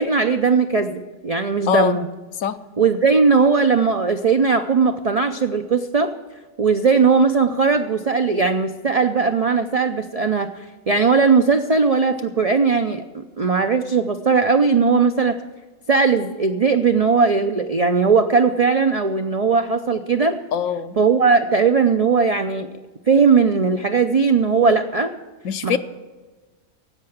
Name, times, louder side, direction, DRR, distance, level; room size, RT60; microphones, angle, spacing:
voice 1, 0.0-2.1 2.8-6.1 6.6-15.4 15.9-20.4 21.0-22.7 23.1-25.1 25.6-25.8, right 5 dB, 65° right, 7 dB, 0.3 m, -18 dB
voice 2, 1.7-2.0 2.4-2.6 20.5-21.0 25.4-25.8, left 9 dB, 70° left, 11 dB, 1.1 m, -22 dB
16.5 x 5.7 x 8.8 m, 1.3 s
omnidirectional pair, 1.5 m